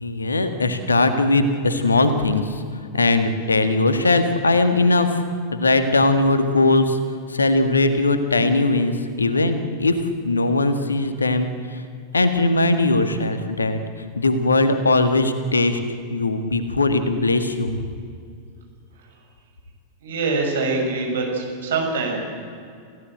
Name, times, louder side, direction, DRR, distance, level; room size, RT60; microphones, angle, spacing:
voice 1, 0.0-2.6 2.9-5.2 5.5-7.0 7.3-10.0 10.2-11.8 12.1-13.8 14.2-15.8 16.1-17.7, left 2 dB, 75° left, 9 dB, 1.8 m, -20 dB
voice 2, 20.0-22.2, right 3 dB, 60° right, 1 dB, 6.2 m, -24 dB
28.5 x 16.5 x 7.9 m, 2.3 s
figure-of-eight pair, 90°, 0 cm